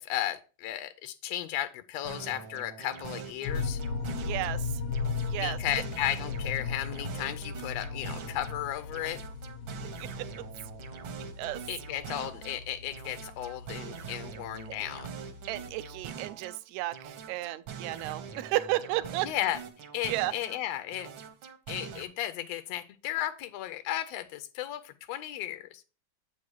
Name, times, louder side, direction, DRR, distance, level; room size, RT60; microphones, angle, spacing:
voice 1, 0.0-3.8 5.4-9.2 11.7-15.1 19.2-19.6 19.9-21.1 21.7-25.8, left 13 dB, 80° left, 1.6 m, -34 dB
sound 1, 2.0-4.6 4.9-8.6 8.9-12.6 12.9-16.6 16.9-20.6 20.9-22.0, right 7 dB, 65° right, 1.2 m, -44 dB
sound 2, 3.4-16.0, left 4 dB, 60° left, 1.8 m, -37 dB
voice 2, 4.2-4.7 5.3-5.6 10.2-10.3 11.4-11.6 15.5-19.3 20.1-20.3, right 16 dB, 80° right, 1.8 m, -33 dB
8.5 x 4.6 x 4.7 m
omnidirectional pair, 3.3 m